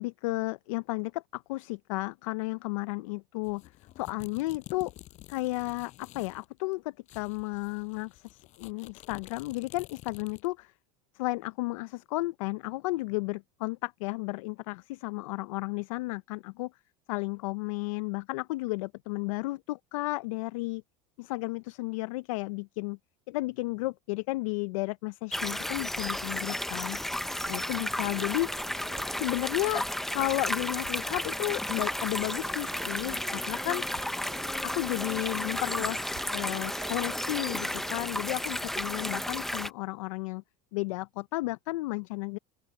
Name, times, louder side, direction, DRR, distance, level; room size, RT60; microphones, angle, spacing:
voice 1, 0.0-3.6 4.0-4.9 5.3-10.7 11.1-16.7 17.1-20.8 21.2-23.0 23.3-27.0 27.5-28.5 29.2-29.9 30.1-33.8 34.6-40.4 40.7-42.4, left 22 dB, 85° left, 0.5 m, -33 dB
sound 1, 3.4-6.5 6.7-6.8 7.1-10.6, left 16 dB, 45° left, 6.7 m, -50 dB
sound 2, 25.3-39.7, left 1 dB, ahead, 0.7 m, -33 dB
sound 3, 27.4-38.0, right 16 dB, 50° right, 2.8 m, -50 dB
open air
supercardioid pair, 145°, 17 cm